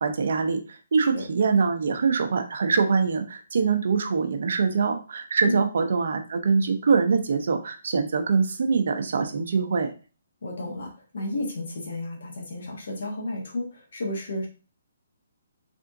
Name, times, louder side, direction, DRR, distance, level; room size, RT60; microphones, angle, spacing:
voice 1, 0.0-9.9, right 5 dB, 65° right, 6 dB, 0.7 m, -24 dB
voice 2, 10.4-14.5, left 2 dB, 65° left, 0 dB, 1.5 m, -32 dB
3.7 x 3.5 x 2.6 m, 0.35 s
hypercardioid pair, 160°, 0 cm